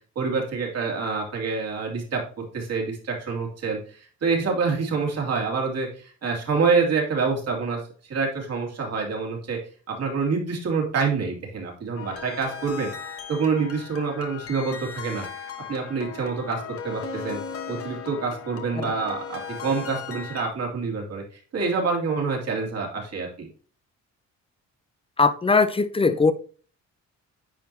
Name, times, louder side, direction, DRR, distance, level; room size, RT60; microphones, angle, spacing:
voice 1, 0.2-2.2 2.5-9.6 9.9-12.9 13.3-15.2 15.7-17.4 17.7-21.2 21.5-23.5, right 4 dB, 55° right, 2.5 m, -27 dB
sound 1, 12.0-20.5, left 6 dB, 50° left, 1.3 m, -37 dB
voice 2, 25.2-26.3, left 4 dB, 20° left, 0.6 m, -20 dB
9.5 x 4.6 x 2.8 m
cardioid pair, 90°, 30 cm